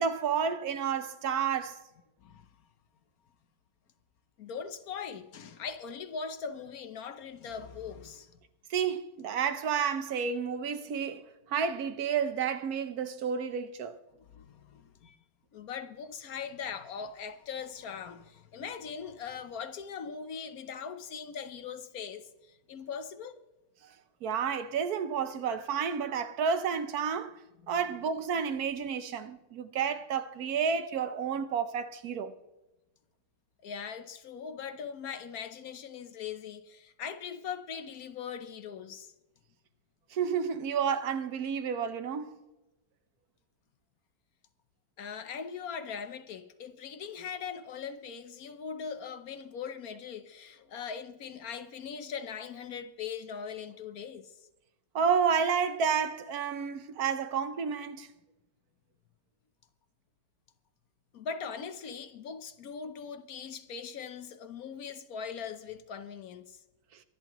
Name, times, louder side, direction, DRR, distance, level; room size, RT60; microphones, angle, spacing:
voice 1, 0.0-1.8 8.7-14.0 24.2-27.3 27.7-32.3 40.1-42.3 54.9-58.1, right 6 dB, 65° right, 1.3 m, -30 dB
voice 2, 4.4-8.3 14.3-15.2 15.5-23.4 27.6-27.8 33.6-39.1 45.0-54.4 61.1-66.6, left 6 dB, 60° left, 1.2 m, -40 dB
24.0 x 10.5 x 3.0 m
omnidirectional pair, 1.8 m